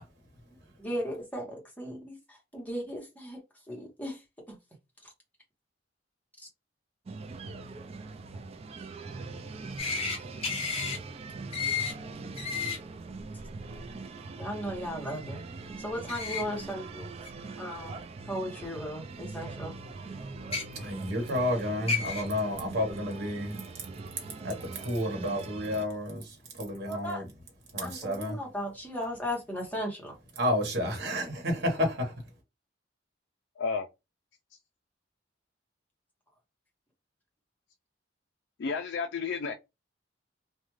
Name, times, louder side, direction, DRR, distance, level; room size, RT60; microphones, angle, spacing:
voice 1, 0.8-2.2 2.5-3.4 3.7-4.2 4.5-4.6 14.4-15.4 15.8-17.1 17.6-18.0 18.3-19.7 26.9-27.2 27.8-30.1, equal, 10° left, 1.0 m, -36 dB
sound 1, 7.1-25.9, right 3 dB, 30° right, 0.3 m, -42 dB
sound 2, 9.8-10.2 10.4-11.0 11.5-11.9 12.4-12.8 16.1-16.4 17.3-17.4 18.6-18.7 20.4-20.6 21.5-21.6 21.9-22.2, left 5 dB, 30° left, 0.7 m, -31 dB
voice 2, 20.7-23.6 24.4-27.3 27.7-28.4 30.4-32.1, left 1 dB, 60° right, 1.1 m, -31 dB
voice 3, 33.6-33.9 38.6-39.5, left 5 dB, 60° left, 0.4 m, -31 dB
2.4 x 2.2 x 3.0 m
head